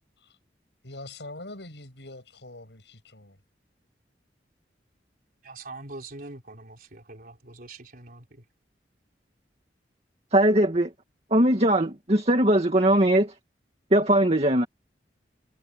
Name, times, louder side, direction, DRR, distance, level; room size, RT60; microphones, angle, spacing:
voice 1, 0.8-3.4, left 2 dB, 75° left, 7.5 m, -43 dB
voice 2, 5.4-8.4, right 2 dB, 55° right, 4.1 m, -43 dB
voice 3, 10.3-10.9 11.3-13.3 13.9-14.7, right 1 dB, 35° right, 2.2 m, -20 dB
head